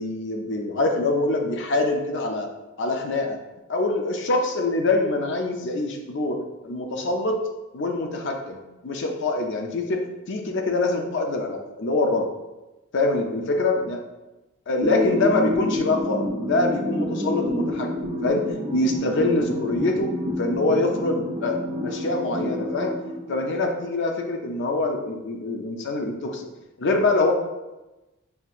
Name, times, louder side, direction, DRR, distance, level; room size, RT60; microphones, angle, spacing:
voice 1, 0.0-2.5 2.8-3.4 3.7-6.4 6.6-7.4 7.7-8.6 8.8-12.3 12.9-14.0 14.7-18.4 18.7-23.0 23.3-26.5 26.8-27.3, left 2 dB, 55° left, 3 dB, 0.5 m, -24 dB
sound 1, 14.8-23.8, left 1 dB, 25° right, 0.4 m, -29 dB
5.7 x 2.7 x 2.5 m, 1.0 s
head